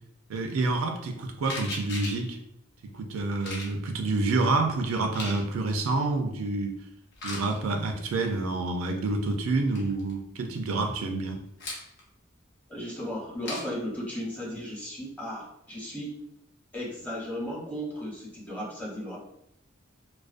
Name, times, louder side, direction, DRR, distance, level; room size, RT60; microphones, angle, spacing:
voice 1, 0.3-2.4 2.9-6.8 7.2-11.4, right 3 dB, 80° right, 4 dB, 0.4 m, -28 dB
sound 1, 1.4-2.3 3.4-3.7 4.9-5.4 7.1-7.6 9.4-9.5 9.7-10.1 11.6-12.0 13.4-13.7, left 2 dB, 55° left, 0.6 m, -37 dB
voice 2, 12.7-16.1 16.7-19.2, equal, 10° left, -6 dB, 0.8 m, -35 dB
2.4 x 2.1 x 2.4 m, 0.79 s
head